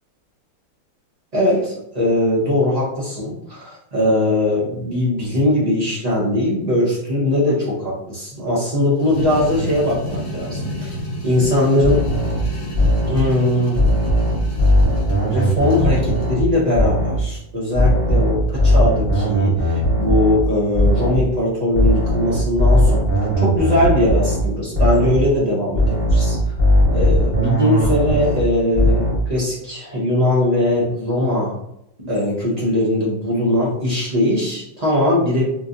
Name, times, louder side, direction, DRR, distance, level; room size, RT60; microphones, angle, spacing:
voice 1, 1.3-10.9 11.2-12.0 13.1-13.8 15.2-23.0 23.4-26.4 26.9-31.6 32.0-35.5, left 1 dB, 40° right, -7 dB, 0.6 m, -20 dB
sound 1, 9.0-16.4, equal, 55° left, 0.9 m, -30 dB
sound 2, 11.8-13.3 13.8-16.5 16.8-17.3 17.8-21.3 21.8-24.5 24.8-25.3 25.7-28.5 28.7-29.3, equal, 15° right, 1.3 m, -18 dB
3.2 x 3.1 x 2.6 m, 0.78 s
omnidirectional pair, 2.3 m